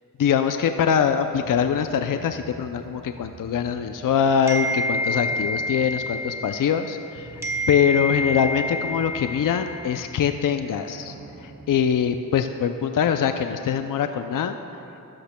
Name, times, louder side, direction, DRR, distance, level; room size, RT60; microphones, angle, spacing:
voice 1, 0.2-7.3 7.7-14.6, left 7 dB, 65° left, 7 dB, 0.5 m, -23 dB
sound 1, 0.7-13.1, right 2 dB, 75° right, 1.4 m, -47 dB
sound 2, 4.5-7.1 7.4-10.0, left 1 dB, 10° right, 1.1 m, -28 dB
13.5 x 11.5 x 2.2 m, 2.8 s
cardioid pair, 60°, 35 cm